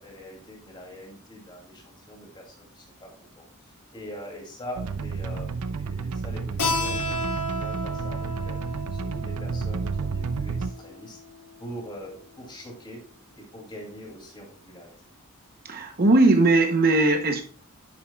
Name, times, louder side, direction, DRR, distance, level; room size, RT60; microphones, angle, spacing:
voice 1, 0.0-3.4 3.9-8.6 8.9-11.2 11.6-13.0 13.5-14.9, equal, 20° left, 2.6 m, -43 dB
sound 1, 4.8-10.7, right 5 dB, 90° right, 0.5 m, -31 dB
Keyboard (musical), 6.6-11.9, left 1 dB, 85° left, 2.1 m, -33 dB
voice 2, 15.6-17.4, right 2 dB, 40° right, 0.8 m, -19 dB
10.5 x 7.0 x 2.3 m
head